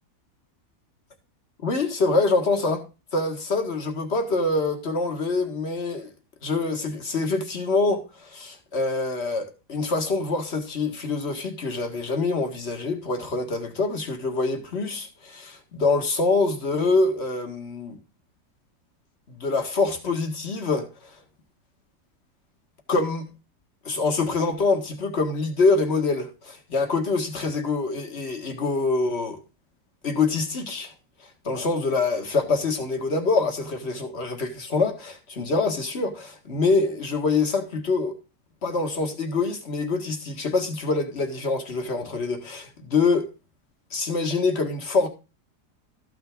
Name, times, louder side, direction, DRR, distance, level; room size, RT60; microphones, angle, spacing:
voice 1, 1.6-2.8 3.1-6.1 6.4-18.0 19.3-20.9 22.9-23.3 23.9-29.4 30.0-30.9 31.5-38.2 38.6-43.3 43.9-45.1, left 3 dB, 40° left, 2.0 m, -25 dB
14.0 x 5.9 x 3.6 m
omnidirectional pair, 1.7 m